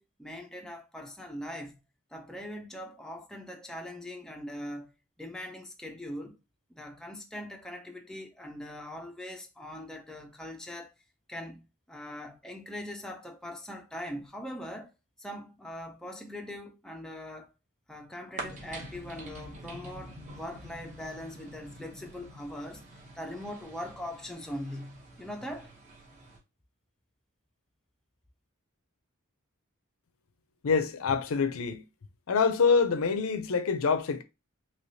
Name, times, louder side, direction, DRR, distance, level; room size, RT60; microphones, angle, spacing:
voice 1, 0.0-1.8 2.1-4.9 5.2-6.4 6.7-10.9 11.3-14.9 15.2-17.5 17.9-22.8 23.1-25.7, left 1 dB, 5° left, 0.4 m, -41 dB
sound 1, 18.4-26.4, right 1 dB, 35° right, 0.8 m, -46 dB
voice 2, 30.6-31.8 32.3-34.2, left 5 dB, 70° left, 0.5 m, -26 dB
3.2 x 2.8 x 2.7 m
head